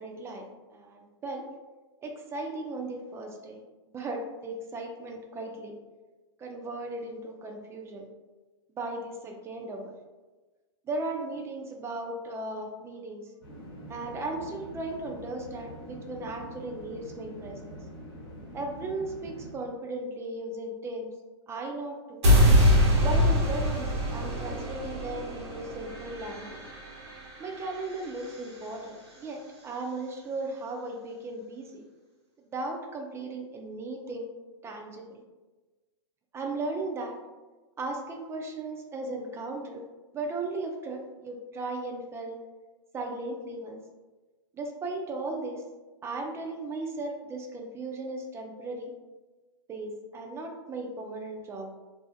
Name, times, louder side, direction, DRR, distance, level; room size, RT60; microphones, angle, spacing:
voice 1, 0.0-1.5 2.0-3.6 3.9-5.8 6.4-8.1 8.7-9.9 10.9-13.3 13.9-17.8 18.5-21.1 21.5-22.2 23.0-26.6 27.4-31.8 32.4-34.3 34.6-35.2 36.3-37.2 37.8-39.8 40.1-42.4 42.9-43.8 44.5-45.6 46.0-48.9 49.7-51.7, right 2 dB, 20° right, 2 dB, 0.4 m, -36 dB
sound 1, 13.4-19.5, equal, 55° left, 0.9 m, -44 dB
sound 2, 22.2-28.4, equal, 70° right, 1.2 m, -24 dB
2.6 x 2.4 x 2.3 m, 1.2 s
hypercardioid pair, 115°, 15 cm